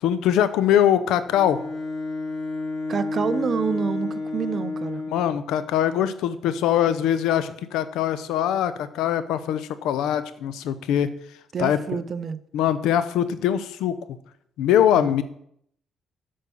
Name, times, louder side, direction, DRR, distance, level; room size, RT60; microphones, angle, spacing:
voice 1, 0.0-1.6 5.1-11.1 11.6-11.8 12.5-13.9 14.6-15.2, left 10 dB, 90° left, 0.7 m, -22 dB
Bowed string instrument, 1.3-5.4, left 3 dB, 30° left, 2.8 m, -30 dB
voice 2, 2.9-5.0 11.5-12.4 14.9-15.1, right 6 dB, 50° right, 0.6 m, -28 dB
8.6 x 5.5 x 6.8 m
cardioid pair, 90°, 0 cm